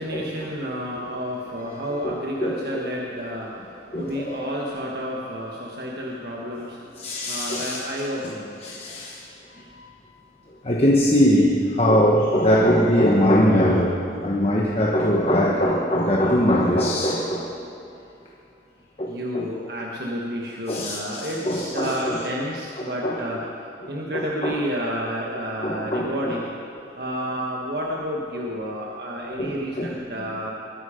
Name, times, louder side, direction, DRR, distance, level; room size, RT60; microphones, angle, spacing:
voice 1, 0.0-3.5 3.9-6.8 7.3-8.5 19.1-23.4 23.9-26.5 27.0-30.5, equal, 65° right, -3 dB, 1.4 m, -30 dB
voice 2, 2.0-2.5 3.9-4.5 7.0-7.8 8.6-9.2 9.7-9.9 10.6-17.5 19.0-19.5 20.7-22.2 22.8-23.2 24.1-24.6 25.6-26.4 29.4-29.9, equal, 35° left, -2 dB, 1.1 m, -22 dB
22.0 x 10.0 x 5.1 m, 2.7 s
head